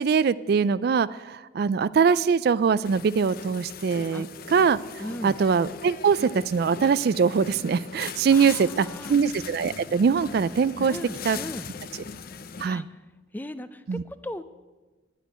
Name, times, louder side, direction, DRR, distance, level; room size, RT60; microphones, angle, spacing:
voice 1, 0.0-4.8 5.2-11.0 11.2-11.4 12.6-12.9 13.9-14.0, right 6 dB, 55° right, 17 dB, 0.3 m, -22 dB
sound 1, 2.8-12.7, left 5 dB, 55° left, 0.6 m, -40 dB
voice 2, 5.0-5.4 8.3-9.1 10.8-11.7 12.6-12.8 13.3-14.4, left 1 dB, 10° left, 12 dB, 0.5 m, -37 dB
10.0 x 9.1 x 9.4 m, 1.2 s
head